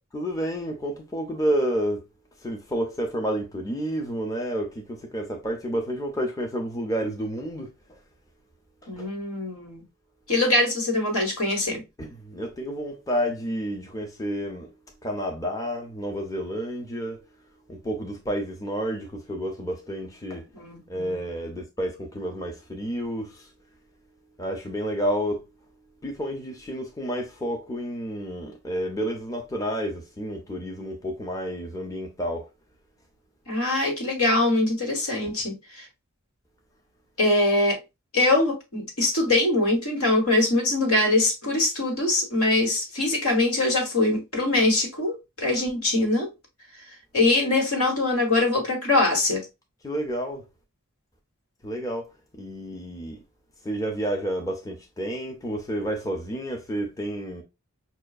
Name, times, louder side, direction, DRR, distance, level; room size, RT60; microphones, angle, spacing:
voice 1, 0.1-2.0 2.4-8.0 8.8-9.1 12.0-14.7 15.0-17.2 17.7-23.5 24.4-25.4 26.0-32.5 49.8-50.4 51.6-52.1 52.3-53.2 53.6-57.4, equal, 15° left, 0.6 m, -30 dB
voice 2, 8.9-9.8 10.3-11.8 20.5-21.3 33.5-35.9 37.2-37.8 38.1-46.3 47.1-49.4, left 2 dB, 80° left, 1.5 m, -23 dB
5.5 x 2.3 x 2.4 m
head